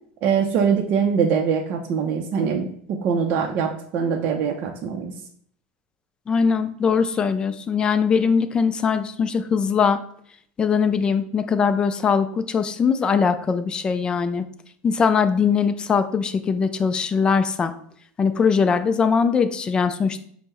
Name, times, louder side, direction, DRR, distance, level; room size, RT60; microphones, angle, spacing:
voice 1, 0.2-5.1, right 6 dB, 45° right, 1 dB, 0.5 m, -23 dB
voice 2, 6.3-10.0 10.6-14.4 14.8-17.7 18.2-20.2, left 6 dB, 20° left, 9 dB, 0.3 m, -21 dB
5.5 x 2.0 x 4.2 m, 0.62 s
supercardioid pair, 145°, 5 cm